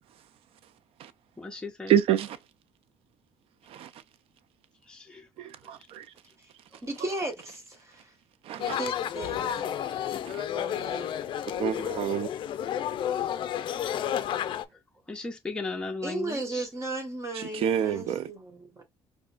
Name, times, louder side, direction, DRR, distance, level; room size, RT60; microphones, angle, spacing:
voice 1, 1.4-2.0 4.9-5.2 14.4-14.6 15.1-16.7, left 3 dB, 10° left, 0.8 m, -36 dB
voice 2, 1.9-2.4 3.8-3.9 5.7-6.0 8.5-8.8 10.3-10.4 11.6-12.3 17.5-18.3, right 10 dB, 70° right, 0.5 m, -26 dB
voice 3, 6.8-8.1 8.6-9.8 10.5-11.1 16.0-18.8, right 2 dB, 30° right, 1.4 m, -36 dB
sound 1, 8.6-14.6, left 10 dB, 55° left, 0.4 m, -31 dB
4.9 x 2.2 x 2.5 m
cardioid pair, 115°, 10 cm